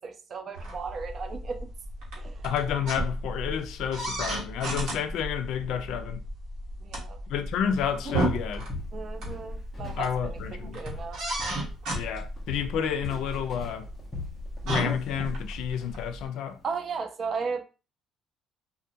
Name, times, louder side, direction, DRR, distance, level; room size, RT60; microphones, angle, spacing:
voice 1, 0.0-1.7 2.1-2.5 6.8-7.2 8.9-11.3 16.6-17.6, right 5 dB, 35° right, 0.3 m, -35 dB
sound 1, 0.5-16.3, right 1 dB, 65° right, 1.0 m, -34 dB
voice 2, 2.4-6.2 7.3-8.7 10.0-10.8 11.9-13.9 14.6-16.6, left 8 dB, 75° left, 0.3 m, -30 dB
Walk footsteps, 8.1-8.3 8.7-10.1 10.4-11.7 11.9-15.4 15.7-16.0 16.5-16.6, left 3 dB, 20° left, 0.7 m, -40 dB
2.3 x 2.1 x 2.7 m
cardioid pair, 140°, 0 cm